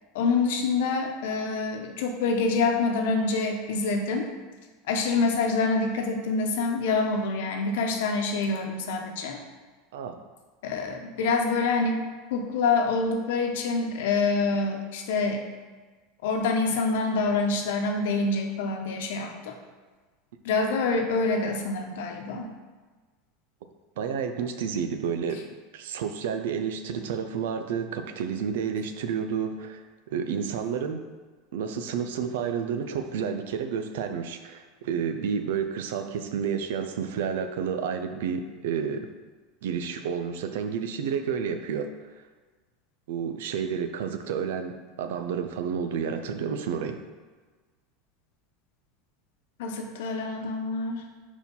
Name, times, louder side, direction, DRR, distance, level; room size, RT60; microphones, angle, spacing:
voice 1, 0.1-4.3 4.9-9.4 10.6-15.4 16.2-19.5 20.4-22.5 49.6-51.0, left 3 dB, 80° left, 3 dB, 1.0 m, -26 dB
voice 2, 24.0-31.0 31.5-39.1 39.6-41.9 43.1-47.0, right 7 dB, 85° right, 7 dB, 0.6 m, -30 dB
4.6 x 4.5 x 5.4 m, 1.4 s
supercardioid pair, 130°, 0 cm